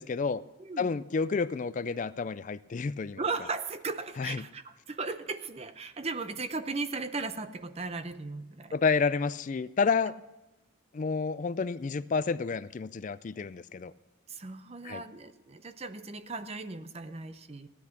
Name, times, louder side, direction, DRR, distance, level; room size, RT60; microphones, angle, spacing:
voice 1, 0.0-0.4 0.8-3.2 4.2-4.4 8.7-10.2 10.9-13.9 14.8-15.0, left 5 dB, 40° left, 16 dB, 0.3 m, -30 dB
voice 2, 0.6-0.9 3.2-8.7 14.3-17.7, right 3 dB, 30° right, 11 dB, 0.7 m, -37 dB
15.5 x 10.0 x 5.9 m, 1.0 s
head